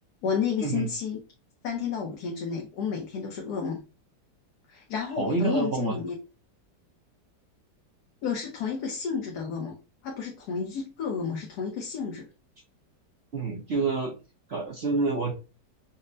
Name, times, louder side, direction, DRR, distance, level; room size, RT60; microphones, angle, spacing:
voice 1, 0.2-1.2 1.6-3.8 4.7-6.2 8.2-9.7 10.0-12.3, left 6 dB, 70° left, 1 dB, 1.2 m, -31 dB
voice 2, 5.2-6.0 13.3-14.1 14.5-15.3, right 3 dB, 65° right, -1 dB, 0.6 m, -27 dB
5.3 x 2.1 x 2.6 m, 0.30 s
omnidirectional pair, 1.8 m